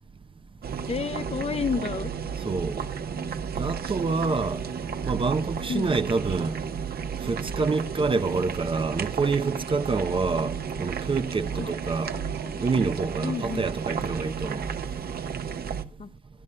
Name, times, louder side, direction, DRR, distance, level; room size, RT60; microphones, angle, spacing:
sound 1, 0.6-15.8, right 7 dB, 50° right, 1.1 m, -33 dB
voice 1, 0.9-2.1 5.7-6.0 11.5-11.7 13.2-13.6 16.0-16.1, left 6 dB, 30° left, 0.6 m, -30 dB
voice 2, 2.4-2.8 3.6-4.6 5.1-6.6 7.2-12.1 12.6-14.6, right 4 dB, 25° right, 0.6 m, -27 dB
sound 2, 12.0-15.1 15.7-15.8, right 5 dB, 80° right, 6.4 m, -46 dB
24.5 x 11.0 x 2.2 m
cardioid pair, 90°, 20 cm